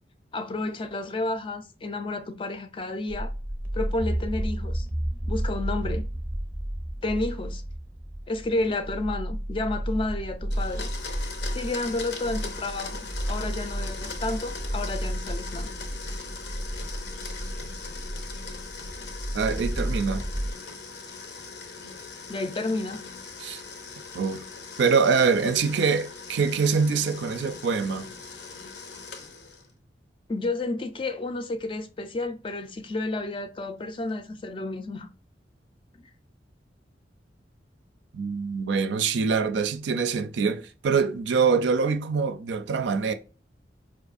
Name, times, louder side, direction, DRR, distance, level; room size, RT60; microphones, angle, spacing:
voice 1, 0.3-3.3 3.7-4.9 5.3-6.0 7.0-7.6 8.3-10.9 11.5-15.7 22.3-23.0 30.3-35.1, left 2 dB, 30° left, 0.3 m, -31 dB
sound 1, 3.1-20.5, equal, 15° right, 0.6 m, -32 dB
Domestic sounds home sounds, 10.5-29.7, left 4 dB, 70° left, 0.6 m, -40 dB
voice 2, 19.3-20.2 23.4-23.6 24.1-24.4 24.8-28.1 38.1-43.1, right 5 dB, 80° right, 0.4 m, -24 dB
4.6 x 2.6 x 2.4 m
head